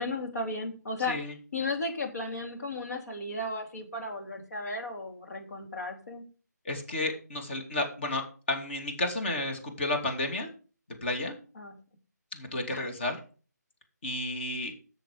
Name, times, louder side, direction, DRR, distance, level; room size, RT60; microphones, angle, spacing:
voice 1, 0.0-1.1 1.5-6.2 11.6-11.7 12.7-12.9, left 2 dB, 60° left, 3 dB, 3.2 m, -34 dB
voice 2, 6.6-10.5 11.0-11.3 12.3-13.2 14.0-14.7, left 2 dB, 40° left, 3 dB, 2.8 m, -32 dB
13.0 x 6.8 x 5.1 m, 0.38 s
figure-of-eight pair, 165°, 10 cm